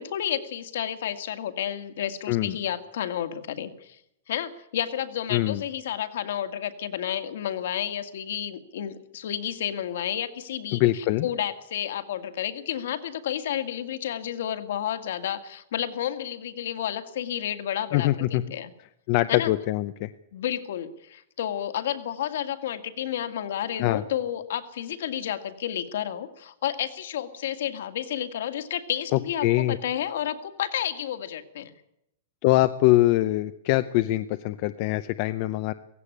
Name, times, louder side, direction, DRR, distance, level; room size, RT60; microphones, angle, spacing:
voice 1, 0.0-4.0 4.3-18.7 19.3-19.5 20.3-31.7, left 10 dB, 65° left, 9 dB, 2.1 m, -31 dB
voice 2, 5.3-5.6 10.7-11.3 17.9-18.4 19.1-20.1 23.8-24.0 29.1-29.8 32.4-35.7, left 17 dB, 35° left, 11 dB, 0.7 m, -23 dB
16.5 x 16.5 x 10.0 m, 0.81 s
supercardioid pair, 175°, 0 cm